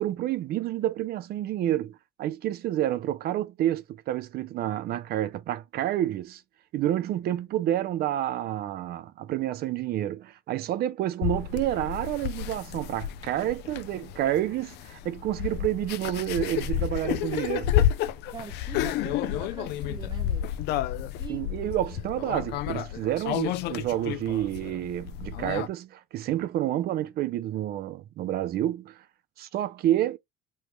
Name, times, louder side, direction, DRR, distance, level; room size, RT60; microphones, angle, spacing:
voice 1, 0.0-6.4 6.7-17.7 21.3-29.0 29.4-30.2, right 12 dB, 65° right, 0.5 m, -29 dB
sound 1, 11.2-25.7, left 11 dB, 80° left, 0.4 m, -31 dB
voice 2, 18.3-20.5 21.1-21.4, right 5 dB, 25° right, 1.1 m, -42 dB
3.2 x 2.2 x 3.1 m
cardioid pair, 110°, 17 cm